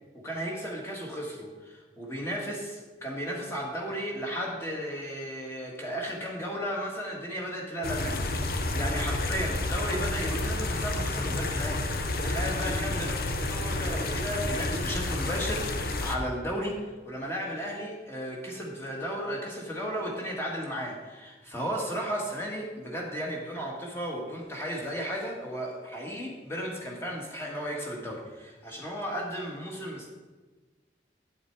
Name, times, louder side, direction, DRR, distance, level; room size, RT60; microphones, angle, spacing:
voice 1, 0.2-13.2 13.5-30.1, equal, 15° left, -1 dB, 1.8 m, -34 dB
sound 1, 7.8-16.2, left 2 dB, 55° left, 0.8 m, -30 dB
8.6 x 8.0 x 4.7 m, 1.3 s
head